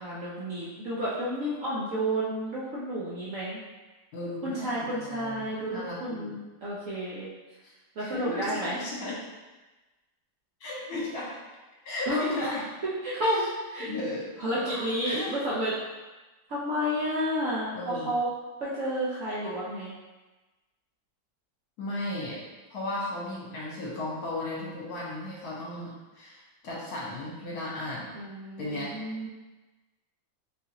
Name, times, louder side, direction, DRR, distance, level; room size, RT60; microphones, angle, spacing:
voice 1, 0.0-3.6 4.4-7.3 8.0-8.7 12.1-12.3 13.0-13.9 14.4-15.7 16.5-18.3 18.6-19.9 28.1-29.3, equal, 65° right, -8 dB, 0.7 m, -31 dB
voice 2, 4.1-6.4 7.6-7.7 8.0-9.2 10.6-11.3 11.8-12.6 13.3-13.5 13.8-14.3 14.5-15.4 17.7-18.1 19.4-19.6 21.8-22.4 22.7-28.1 28.6-28.9, left 1 dB, 60° left, -6 dB, 1.4 m, -35 dB
3.9 x 2.4 x 2.9 m, 1.2 s
omnidirectional pair, 2.0 m